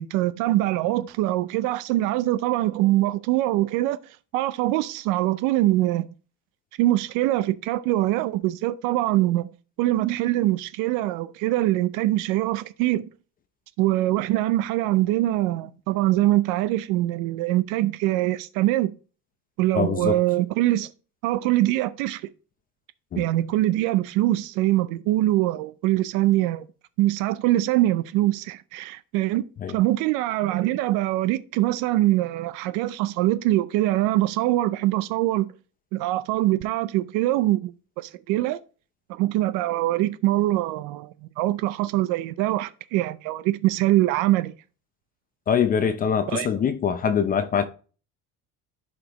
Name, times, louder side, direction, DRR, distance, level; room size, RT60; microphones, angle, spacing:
voice 1, 0.0-6.1 6.8-9.5 9.8-13.1 13.8-19.0 19.6-20.9 21.2-22.3 23.2-26.7 27.0-35.5 35.9-38.6 39.1-44.5 46.3-46.6, right 16 dB, 80° right, 0.6 m, -23 dB
voice 2, 19.7-20.2 23.1-23.2 29.6-29.7 45.5-47.6, left 7 dB, 25° left, 0.6 m, -23 dB
11.5 x 5.1 x 2.9 m
cardioid pair, 155°, 31 cm